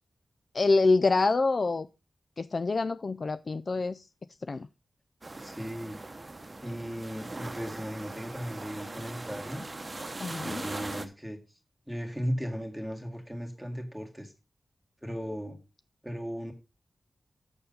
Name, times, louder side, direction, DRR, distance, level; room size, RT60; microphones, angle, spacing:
voice 1, 0.5-1.9 2.4-4.0 4.5-4.7 10.2-10.6, left 3 dB, 45° left, 0.4 m, -26 dB
sound 1, 5.2-11.1, right 2 dB, 30° right, 1.0 m, -40 dB
voice 2, 5.4-6.0 6.5-9.7 10.4-11.4 11.9-14.3 15.0-15.6 16.0-16.5, equal, ahead, 2.0 m, -36 dB
6.9 x 6.8 x 5.4 m
wide cardioid pair, 115°, 0 cm